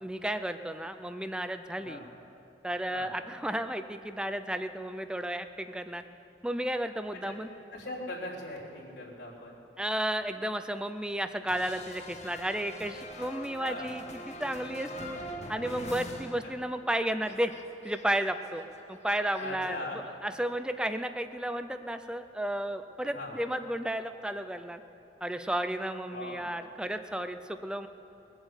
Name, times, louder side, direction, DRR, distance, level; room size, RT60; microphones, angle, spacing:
voice 1, 0.0-2.0 2.6-6.0 6.4-7.5 9.8-15.2 15.5-17.5 17.8-18.6 18.9-19.8 20.2-24.8 25.2-27.9, right 1 dB, 5° right, 9 dB, 0.4 m, -33 dB
voice 2, 7.7-9.5 13.6-13.9 16.4-16.5 19.4-20.0 23.0-23.4 26.1-26.5, left 2 dB, 85° left, -6 dB, 3.5 m, -40 dB
sound 1, 11.5-16.9 17.2-19.5, left 1 dB, 40° left, 1.2 m, -44 dB
20.5 x 8.0 x 8.1 m, 2.9 s
head